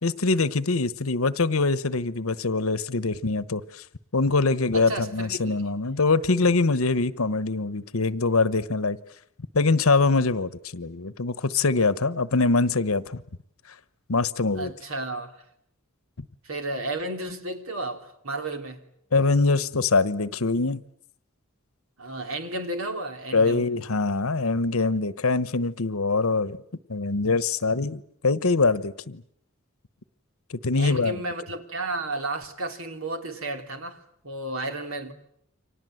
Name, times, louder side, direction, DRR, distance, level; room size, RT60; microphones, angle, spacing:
voice 1, 0.0-3.8 4.1-9.0 9.5-13.2 14.1-14.7 19.1-20.8 23.3-26.6 26.9-29.2 30.5-31.2, left 3 dB, 80° left, 1.1 m, -23 dB
voice 2, 4.7-5.6 14.5-15.3 16.4-18.8 22.0-23.7 30.7-35.1, right 2 dB, 70° right, 3.2 m, -33 dB
30.0 x 25.0 x 7.9 m
head